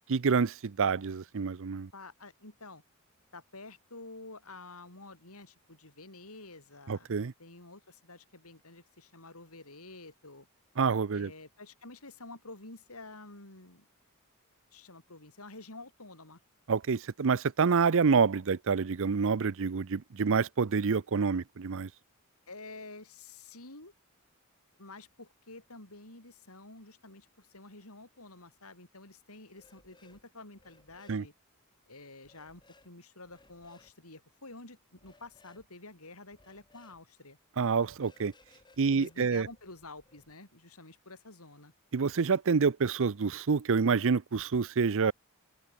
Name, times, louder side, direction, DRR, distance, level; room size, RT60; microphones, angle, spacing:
voice 1, 0.1-1.9 6.9-7.3 10.8-11.3 16.7-21.9 31.1-31.2 37.6-38.3 38.8-39.5 41.9-45.1, right 5 dB, 60° right, 0.6 m, -27 dB
voice 2, 1.9-2.8 3.3-7.1 7.4-10.5 11.1-13.9 14.7-16.4 22.5-23.9 24.8-31.3 31.9-37.4 38.9-41.7, left 2 dB, 75° left, 7.0 m, -49 dB
sound 1, 29.5-30.2 30.5-31.2 32.2-32.9 33.2-33.9 34.9-35.7 36.3-37.0 37.6-40.3, left 2 dB, 20° left, 5.2 m, -63 dB
open air
head